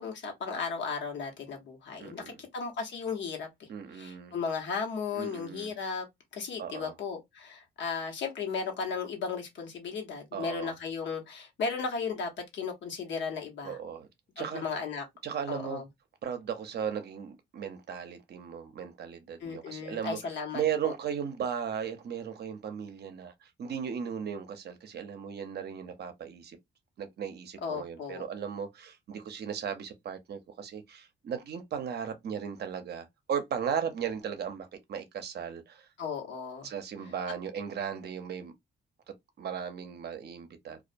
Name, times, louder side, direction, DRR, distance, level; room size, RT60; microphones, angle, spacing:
voice 1, 0.0-3.7 3.9-6.1 6.3-13.8 14.4-15.0 15.5-15.8 19.4-20.9 27.6-28.2 36.0-36.7, left 5 dB, 65° left, 1.0 m, -35 dB
voice 2, 2.0-2.4 3.7-4.3 5.1-5.7 6.6-6.9 10.3-10.7 13.6-14.1 14.4-14.6 15.2-15.8 16.2-20.2 20.5-26.6 27.0-35.9 36.6-38.5 39.4-40.8, right 8 dB, 55° right, 0.6 m, -36 dB
2.3 x 2.1 x 2.5 m
cardioid pair, 90°, 20 cm